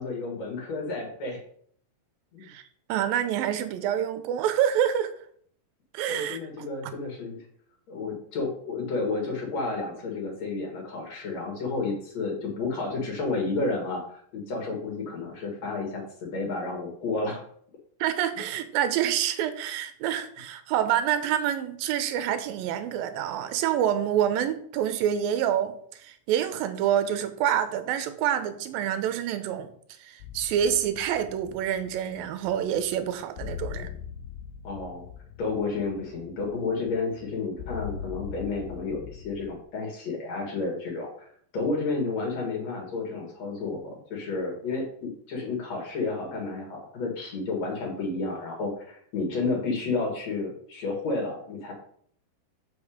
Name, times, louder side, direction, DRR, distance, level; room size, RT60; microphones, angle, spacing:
voice 1, 0.0-1.4 2.3-2.5 6.1-7.4 7.9-17.4 33.7-33.9 34.6-35.1 35.4-41.1 41.5-51.7, left 3 dB, 50° left, 1 dB, 3.0 m, -31 dB
voice 2, 2.9-5.1 5.9-6.7 18.0-25.7 26.0-29.7 30.0-33.9, right 10 dB, 80° right, 10 dB, 2.5 m, -27 dB
sound 1, 30.2-39.6, left 8 dB, 90° left, 2.4 m, -41 dB
6.9 x 6.1 x 5.1 m, 0.62 s
omnidirectional pair, 4.2 m